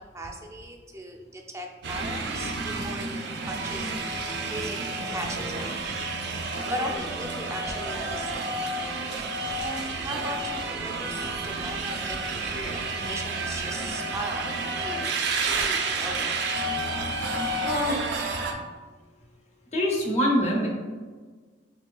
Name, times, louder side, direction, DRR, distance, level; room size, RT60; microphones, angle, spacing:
voice 1, 0.0-3.9 4.4-5.7 6.7-8.7 9.6-12.2 12.5-15.2 15.5-16.3, right 1 dB, 15° right, 2 dB, 0.5 m, -37 dB
sound 1, 1.8-18.5, right 3 dB, 65° right, 0.5 m, -30 dB
voice 2, 17.6-18.0 19.7-20.7, left 1 dB, 40° left, -1 dB, 0.7 m, -24 dB
5.4 x 3.1 x 2.3 m, 1.4 s
head